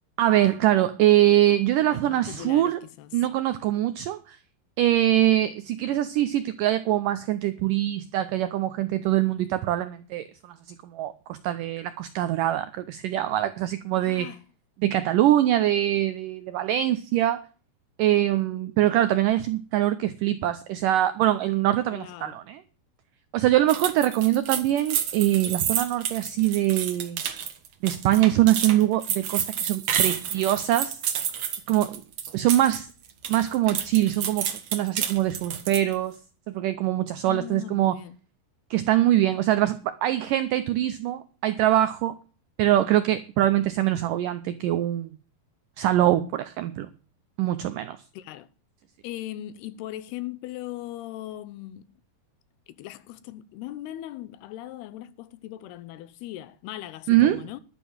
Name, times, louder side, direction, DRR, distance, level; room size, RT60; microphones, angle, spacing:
voice 1, 0.2-2.8 3.1-4.4 4.8-10.6 10.8-14.3 14.8-17.4 18.0-22.6 23.3-27.2 27.8-31.0 31.7-32.0 32.3-32.9 33.3-36.2 36.5-38.0 38.7-42.2 42.6-45.1 45.8-46.9 47.4-48.0 57.1-57.4, right 13 dB, 85° right, 1.9 m, -23 dB
voice 2, 1.9-3.1 14.0-14.4 21.9-22.4 37.3-38.2 48.1-48.5 49.0-52.0 52.7-57.6, left 14 dB, 80° left, 2.8 m, -39 dB
sound 1, 23.7-32.8 33.1-35.9, right 9 dB, 60° right, 1.8 m, -29 dB
12.0 x 7.2 x 7.2 m
omnidirectional pair, 4.6 m